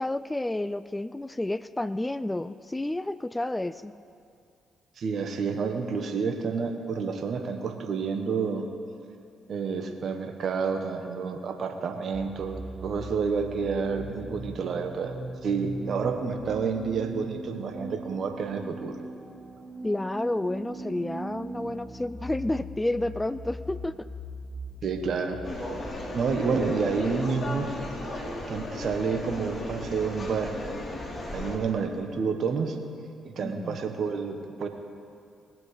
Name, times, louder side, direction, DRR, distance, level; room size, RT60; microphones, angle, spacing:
voice 1, 0.0-3.9 19.8-24.1 33.4-33.8, left 1 dB, 15° left, 15 dB, 0.5 m, -30 dB
voice 2, 5.0-8.7 9.5-15.1 15.4-19.0 24.8-25.4 26.1-27.7 28.5-30.7 31.3-32.8 33.2-34.7, right 5 dB, 60° right, 6 dB, 1.4 m, -29 dB
sound 1, 12.1-27.7, right 1 dB, 40° right, 2.7 m, -41 dB
sound 2, 25.4-31.6, left 1 dB, 40° left, 3.5 m, -35 dB
21.0 x 7.7 x 5.0 m, 2.4 s
hypercardioid pair, 40°, 0 cm